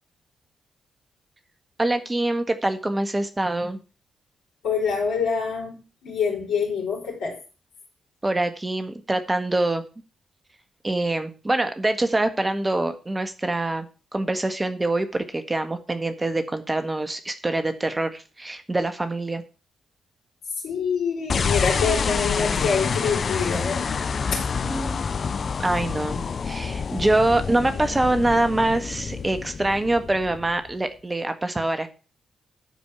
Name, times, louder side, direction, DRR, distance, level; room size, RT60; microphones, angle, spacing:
voice 1, 1.8-3.8 8.2-9.8 10.8-19.4 24.6-25.0 25.6-31.9, right 2 dB, 25° right, 8 dB, 1.6 m, -25 dB
voice 2, 4.6-7.4 20.6-23.9 24.3-24.7, left 6 dB, 75° left, -1 dB, 4.8 m, -26 dB
sound 1, 21.3-30.7, left 5 dB, 55° left, 0.7 m, -27 dB
12.0 x 5.2 x 7.1 m, 0.34 s
hypercardioid pair, 40°, 0 cm